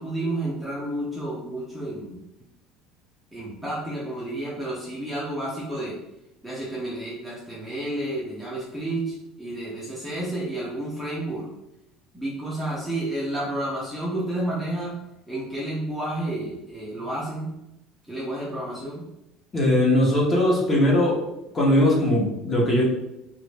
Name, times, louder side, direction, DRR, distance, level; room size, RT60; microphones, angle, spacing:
voice 1, 0.0-2.2 3.3-6.0 6.4-11.5 12.1-15.0 15.3-17.5 18.1-19.1, right 1 dB, 5° right, -6 dB, 0.7 m, -31 dB
voice 2, 19.5-21.2 21.5-22.8, left 1 dB, 25° left, -3 dB, 1.0 m, -20 dB
3.1 x 2.5 x 3.3 m, 0.87 s
cardioid pair, 135°, 0 cm